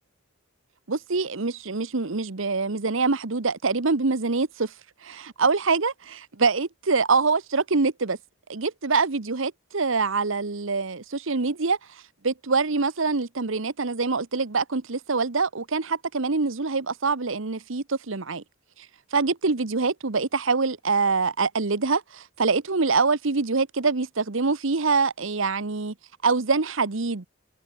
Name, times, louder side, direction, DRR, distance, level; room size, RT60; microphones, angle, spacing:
voice 1, 0.9-4.7 5.0-8.2 8.5-11.8 12.2-18.4 19.1-25.9 26.2-27.3, right 4 dB, 65° right, 1.1 m, -25 dB
head